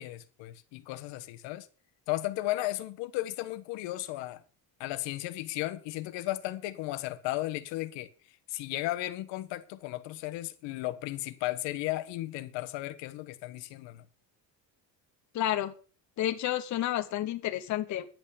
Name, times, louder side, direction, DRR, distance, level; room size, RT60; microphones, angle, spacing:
voice 1, 0.0-1.7 2.1-4.4 4.8-8.1 8.5-14.0, left 17 dB, 85° left, 1.3 m, -35 dB
voice 2, 15.3-15.7 16.2-18.0, left 12 dB, 40° left, 1.1 m, -30 dB
10.5 x 8.2 x 6.8 m
cardioid pair, 170°, 43 cm